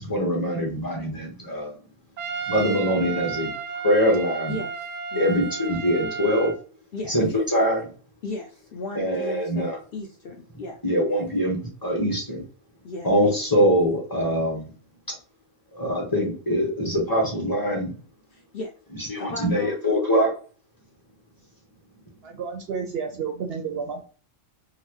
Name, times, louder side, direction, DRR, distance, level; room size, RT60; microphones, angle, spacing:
voice 1, 0.0-1.7 2.5-3.5 3.8-4.6 5.1-6.5 7.1-7.9 8.9-9.8 10.8-12.4 13.0-14.7 15.7-18.0 18.9-20.3, equal, 20° left, 1.1 m, -23 dB
Trumpet, 2.2-6.6, right 6 dB, 85° right, 0.3 m, -33 dB
voice 2, 5.1-5.5 6.9-7.1 8.2-10.7 12.8-13.1 18.5-18.7 19.2-19.7, left 2 dB, 60° left, 0.7 m, -35 dB
voice 3, 22.2-24.0, right 6 dB, 65° right, 0.7 m, -31 dB
3.8 x 2.1 x 3.0 m
omnidirectional pair, 1.3 m